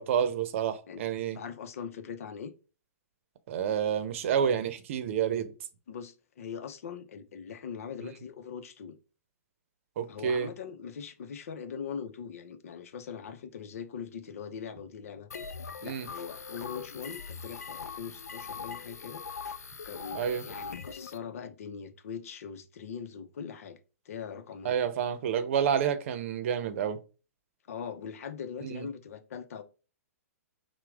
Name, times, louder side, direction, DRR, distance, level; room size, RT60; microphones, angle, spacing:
voice 1, 0.0-1.4 3.5-5.5 10.0-10.5 15.8-16.1 20.1-20.5 24.6-27.0 28.6-28.9, right 8 dB, 55° right, 0.7 m, -29 dB
voice 2, 1.3-2.5 5.9-9.0 10.1-15.3 15.8-19.5 19.8-23.8 24.0-25.0 27.7-29.6, left 7 dB, 65° left, 0.7 m, -41 dB
sound 1, 15.3-21.2, left 5 dB, 85° left, 0.4 m, -41 dB
5.8 x 2.2 x 3.5 m
hypercardioid pair, 125°, 8 cm